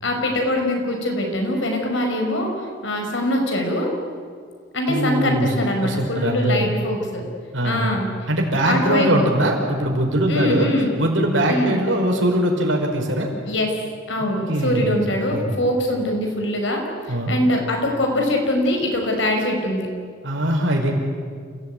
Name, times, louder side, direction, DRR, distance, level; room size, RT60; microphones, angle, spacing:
voice 1, 0.0-2.5 2.8-3.9 4.7-7.2 7.6-8.1 8.7-9.1 10.3-10.9 11.5-11.8 13.5-13.7 14.1-16.8 17.3-19.9, left 1 dB, 80° left, 2 dB, 5.5 m, -22 dB
voice 2, 4.9-5.5 5.8-6.7 7.5-7.9 8.3-10.7 11.0-13.3 14.5-15.0 15.3-15.5 17.1-17.4 20.2-20.9, right 1 dB, 85° right, 1 dB, 5.3 m, -21 dB
29.0 x 17.0 x 9.4 m, 2.1 s
head